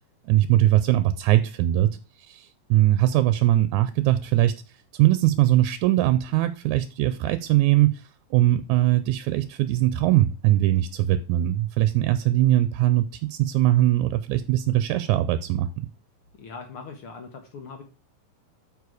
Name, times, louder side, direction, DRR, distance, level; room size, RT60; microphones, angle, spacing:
voice 1, 0.3-1.9 2.2-4.5 4.9-15.9, right 14 dB, 80° right, 1.9 m, -21 dB
voice 2, 16.4-17.8, left 4 dB, 60° left, 1.5 m, -40 dB
8.3 x 4.9 x 4.8 m
omnidirectional pair, 3.5 m